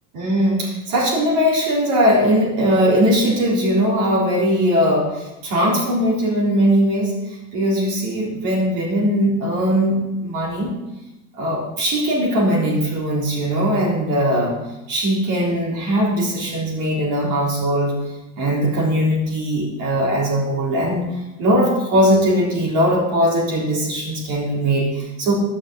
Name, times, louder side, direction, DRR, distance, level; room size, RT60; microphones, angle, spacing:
voice 1, 0.1-7.1 7.5-10.7 11.3-14.6 14.9-18.0 18.4-21.1 21.4-25.3, equal, 55° right, -4 dB, 3.8 m, -19 dB
12.0 x 6.4 x 6.3 m, 0.96 s
cardioid pair, 180°, 37 cm